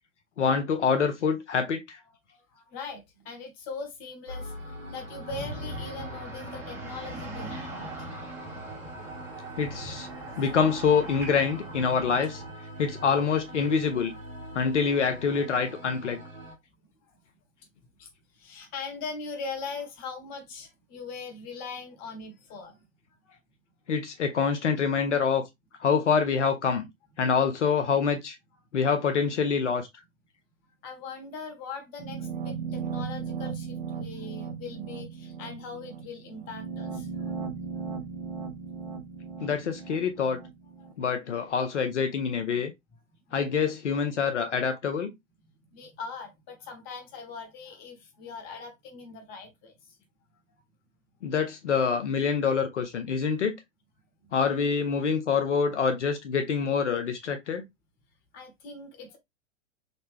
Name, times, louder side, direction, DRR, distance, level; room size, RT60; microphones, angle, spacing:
voice 1, 0.4-2.0 9.6-10.1 10.4-12.4 12.8-14.1 14.5-16.2 23.9-25.4 25.8-26.9 27.2-28.4 28.7-29.9 39.4-40.4 41.0-42.7 43.3-45.1 51.2-53.6 54.3-57.6, left 6 dB, 60° left, 0.7 m, -26 dB
voice 2, 2.3-4.5 4.9-8.1 9.3-9.5 18.0-18.1 18.3-22.9 23.2-23.4 30.8-37.3 37.7-37.9 40.8-40.9 45.7-49.7 58.3-59.2, left 4 dB, 25° left, 1.1 m, -41 dB
sound 1, 4.3-16.6, right 1 dB, 80° right, 1.3 m, -42 dB
sound 2, 5.3-12.5, right 1 dB, 5° right, 0.8 m, -41 dB
sound 3, 32.0-40.9, right 6 dB, 40° right, 0.6 m, -37 dB
3.9 x 2.1 x 3.5 m
figure-of-eight pair, 110°, 39 cm